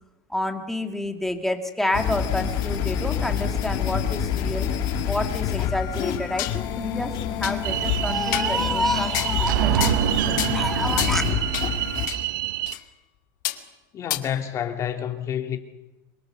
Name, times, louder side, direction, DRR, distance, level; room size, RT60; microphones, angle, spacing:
voice 1, 0.3-4.7 5.1-11.2, left 1 dB, 5° left, 2.2 m, -29 dB
sound 1, 1.9-12.1, left 8 dB, 45° left, 3.2 m, -27 dB
sound 2, 6.0-6.6 7.0-7.1 7.4-7.5 8.3-8.5 9.1-9.4 9.8-10.1 10.4-10.6 11.0-11.2 11.5-11.7 12.1-12.2 12.7-12.8 13.4-13.6 14.1-14.2, left 17 dB, 75° left, 2.3 m, -28 dB
sound 3, 7.6-12.7, right 13 dB, 85° right, 0.9 m, -26 dB
voice 2, 13.9-15.6, left 9 dB, 30° left, 2.5 m, -28 dB
27.0 x 23.0 x 6.6 m
supercardioid pair, 145°, 10 cm